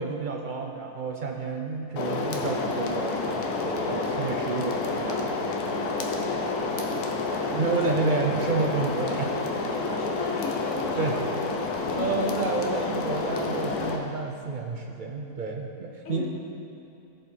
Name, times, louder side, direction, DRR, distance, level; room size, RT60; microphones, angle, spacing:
voice 1, 0.0-5.4 7.5-9.4 9.7-9.8 10.9-11.2 12.0-16.3, right 4 dB, 75° right, 2 dB, 0.4 m, -30 dB
sound 1, 2.0-14.0, left 3 dB, 80° left, 1.3 m, -29 dB
voice 2, 6.1-7.9 8.4-8.5 9.8-11.4 11.9-12.5 16.0-16.3, left 3 dB, 60° left, -2 dB, 1.5 m, -37 dB
14.5 x 5.0 x 4.3 m, 2.8 s
omnidirectional pair, 1.6 m